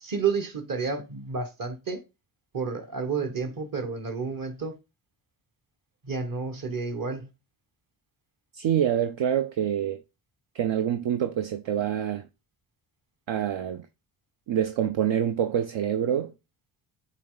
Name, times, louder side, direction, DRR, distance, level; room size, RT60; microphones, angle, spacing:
voice 1, 0.0-2.0 2.5-4.8 6.0-7.3, right 5 dB, 40° right, 1.4 m, -30 dB
voice 2, 8.5-10.0 10.5-12.3 13.3-13.9 14.5-16.3, right 9 dB, 65° right, 0.7 m, -26 dB
8.3 x 3.4 x 3.9 m
supercardioid pair, 55°, 50 cm